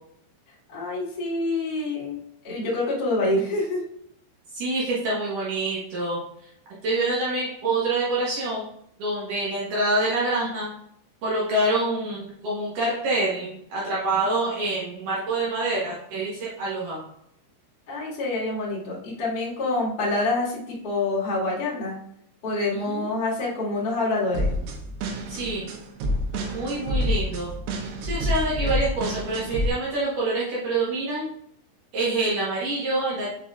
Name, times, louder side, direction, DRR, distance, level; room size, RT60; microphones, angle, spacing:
voice 1, 0.7-3.8 17.9-22.0 22.4-24.5, left 2 dB, 90° left, -6 dB, 0.8 m, -26 dB
voice 2, 4.5-6.2 6.8-8.7 9.0-10.7 11.2-17.0 22.7-23.1 25.3-25.6 26.5-27.5 28.0-31.3 31.9-33.3, right 2 dB, 70° right, -6 dB, 2.0 m, -26 dB
sound 1, 24.3-29.7, equal, 85° right, 3.6 m, -28 dB
7.0 x 5.5 x 2.4 m, 0.72 s
omnidirectional pair, 5.7 m